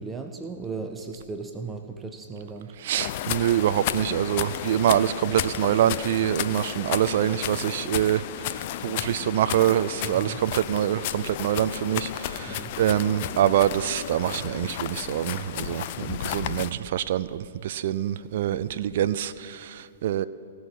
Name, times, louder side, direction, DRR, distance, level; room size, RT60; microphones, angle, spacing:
voice 1, 0.0-2.7 10.1-10.4 12.5-12.7, right 4 dB, 15° right, 5 dB, 0.8 m, -36 dB
voice 2, 2.8-20.3, right 11 dB, 55° right, 13 dB, 0.4 m, -25 dB
sound 1, 3.0-16.7, left 12 dB, 50° left, 0.5 m, -33 dB
17.5 x 6.3 x 9.9 m, 2.8 s
hypercardioid pair, 120°, 0 cm